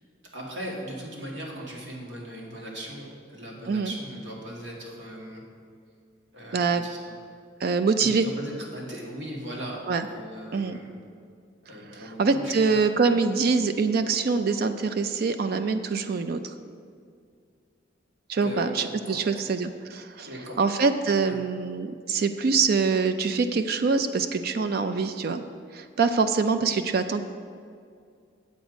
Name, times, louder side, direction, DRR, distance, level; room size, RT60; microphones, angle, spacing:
voice 1, 0.3-5.4 6.3-7.0 8.0-9.8 10.1-10.9 11.7-12.8 18.4-19.4 20.3-20.6 21.3-21.4, equal, 70° right, -2 dB, 2.1 m, -39 dB
voice 2, 6.5-6.8 7.6-8.3 9.9-10.1 10.5-10.8 11.9-16.4 18.3-20.3 20.6-25.4 25.7-27.2, right 4 dB, 50° right, 9 dB, 0.4 m, -24 dB
8.3 x 7.9 x 5.1 m, 2.2 s
head